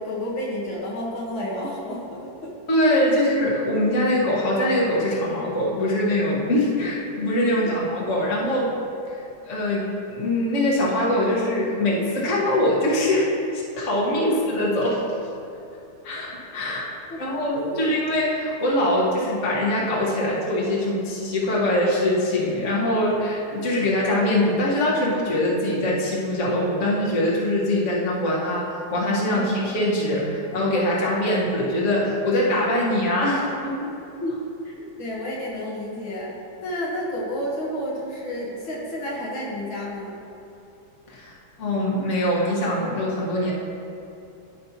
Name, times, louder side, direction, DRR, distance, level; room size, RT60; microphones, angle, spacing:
voice 1, 0.0-2.5 7.7-7.8 14.2-14.3 17.7-17.8 29.3-29.5 34.2-34.3 34.7-36.4 36.6-40.2, left 1 dB, 70° left, -4 dB, 2.1 m, -30 dB
voice 2, 2.7-8.7 9.1-15.0 16.0-16.8 17.2-33.9 41.1-41.3 41.6-43.5, left 1 dB, 40° left, -5 dB, 1.5 m, -23 dB
14.5 x 5.3 x 2.9 m, 2.8 s
omnidirectional pair, 2.3 m